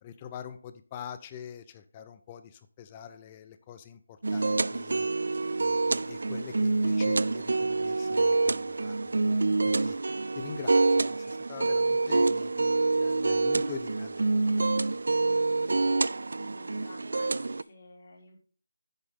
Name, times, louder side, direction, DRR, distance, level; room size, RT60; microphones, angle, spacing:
voice 1, 0.0-5.1 5.6-9.0 9.2-10.0 10.3-15.0, left 8 dB, 20° left, 11 dB, 0.6 m, -45 dB
sound 1, 4.2-17.6, right 3 dB, 65° right, 0.3 m, -27 dB
voice 2, 16.4-18.4, left 2 dB, 45° left, -3 dB, 3.4 m, -52 dB
10.5 x 6.4 x 3.7 m, 0.41 s
figure-of-eight pair, 160°, 0 cm